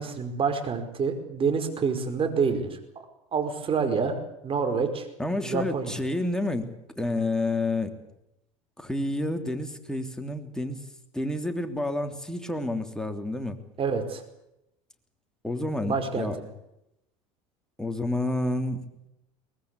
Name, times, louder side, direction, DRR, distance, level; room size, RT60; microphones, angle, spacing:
voice 1, 0.0-2.8 3.3-4.2 4.4-5.1 5.4-6.0 13.8-14.2 15.9-16.3, right 5 dB, 35° right, 6 dB, 5.0 m, -27 dB
voice 2, 5.2-7.9 8.8-10.8 11.1-13.6 15.4-16.4 17.8-18.8, left 2 dB, 5° left, 6 dB, 3.3 m, -29 dB
23.0 x 19.5 x 8.4 m, 0.86 s
hypercardioid pair, 85°, 17 cm